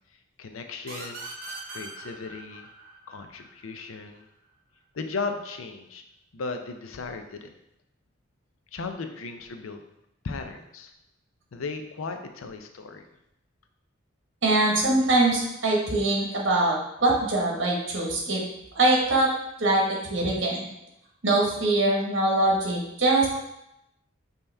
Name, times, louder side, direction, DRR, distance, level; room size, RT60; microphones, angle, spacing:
voice 1, 0.4-1.3 1.7-2.7 3.1-4.2 4.9-6.0 6.3-7.5 8.7-9.8 10.2-10.9 11.5-13.0, left 4 dB, 90° left, 6 dB, 0.5 m, -36 dB
sound 1, 0.9-4.3, right 3 dB, 45° right, 0.8 m, -41 dB
voice 2, 14.4-16.8 17.0-18.4 18.7-19.3 19.6-20.7 21.2-23.3, right 2 dB, 65° right, -2 dB, 1.2 m, -23 dB
5.4 x 2.9 x 3.3 m, 0.85 s
head